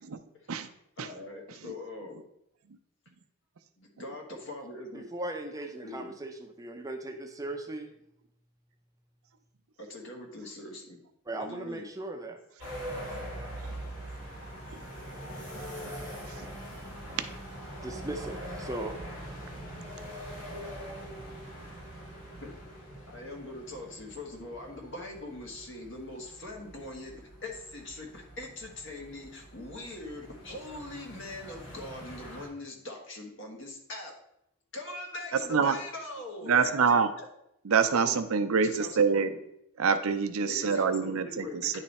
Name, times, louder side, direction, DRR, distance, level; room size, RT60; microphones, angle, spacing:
voice 1, 1.0-2.2 3.8-5.1 5.8-6.1 9.8-11.0 11.3-11.9 22.6-22.7 23.1-34.1 34.7-37.3 37.9-38.1 38.6-39.4 40.5-41.8, left 2 dB, 55° left, 1 dB, 1.3 m, -42 dB
voice 2, 4.9-7.9 11.3-12.4 17.1-17.2 17.8-19.0, right 2 dB, 15° right, 4 dB, 0.5 m, -38 dB
sound 1, 12.6-32.5, equal, 75° left, 2.9 m, -43 dB
voice 3, 35.3-35.8 36.5-37.1 37.6-39.3 39.8-41.8, right 5 dB, 80° right, 8 dB, 0.5 m, -26 dB
9.7 x 3.3 x 4.1 m, 0.79 s
head